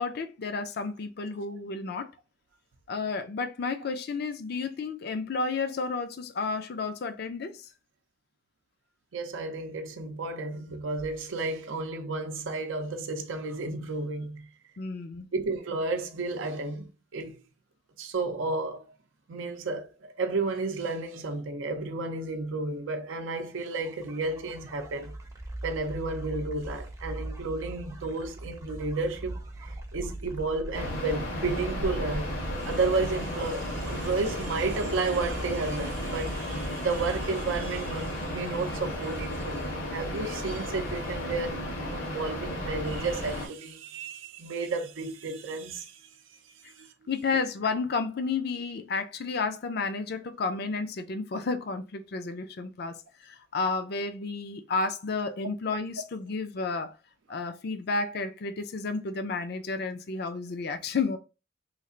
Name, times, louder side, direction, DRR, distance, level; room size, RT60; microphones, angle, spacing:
voice 1, 0.0-2.1 2.9-7.6 14.8-15.3 47.1-57.0 57.3-61.2, left 4 dB, 55° left, 0.4 m, -31 dB
voice 2, 9.1-14.5 15.3-17.4 18.0-18.8 19.3-25.1 25.6-41.6 41.9-46.0 46.8-46.9, right 3 dB, 85° right, 0.5 m, -32 dB
sound 1, 23.6-39.2, right 1 dB, 15° right, 0.5 m, -41 dB
sound 2, 30.7-43.5, left 1 dB, 85° left, 1.5 m, -34 dB
3.2 x 2.4 x 3.7 m
head